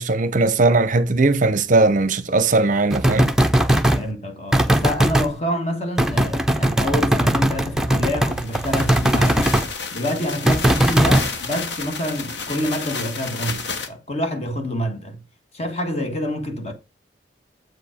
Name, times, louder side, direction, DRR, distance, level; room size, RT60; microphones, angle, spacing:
voice 1, 0.0-3.3, right 3 dB, 40° right, 0.6 m, -18 dB
sound 1, 2.9-4.0 4.5-5.3 6.0-9.7 10.5-11.3, right 1 dB, 5° right, 0.6 m, -19 dB
voice 2, 3.9-9.5 9.9-15.2 15.5-16.7, equal, 35° left, 1.4 m, -27 dB
sound 2, 8.3-13.9, left 4 dB, 65° left, 1.2 m, -31 dB
7.8 x 5.0 x 4.9 m
head